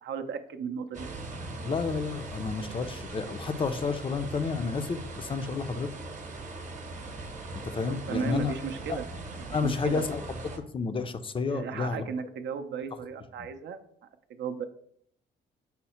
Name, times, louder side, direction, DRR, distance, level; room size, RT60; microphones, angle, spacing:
voice 1, 0.0-1.2 7.9-9.1 9.5-10.1 11.5-13.8 14.3-14.6, right 6 dB, 65° right, 8 dB, 0.5 m, -35 dB
sound 1, 0.9-10.6, right 3 dB, 40° right, 0.8 m, -40 dB
voice 2, 1.6-5.9 7.6-8.5 8.9-9.0 9.5-10.4 10.7-12.1 13.4-13.5, left 4 dB, 25° left, 10 dB, 0.4 m, -31 dB
5.6 x 2.1 x 4.2 m, 0.67 s
cardioid pair, 90°, 20 cm